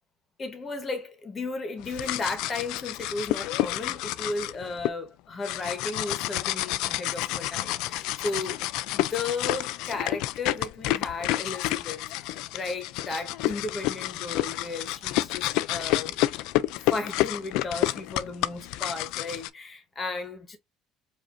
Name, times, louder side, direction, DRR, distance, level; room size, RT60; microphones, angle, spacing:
voice 1, 0.4-8.6 8.9-16.2 16.9-20.6, left 3 dB, 25° left, 1.1 m, -35 dB
sound 1, 1.8-4.9 5.4-19.5, left 16 dB, 75° left, 0.3 m, -29 dB
5.0 x 2.7 x 2.5 m
cardioid pair, 135°, 0 cm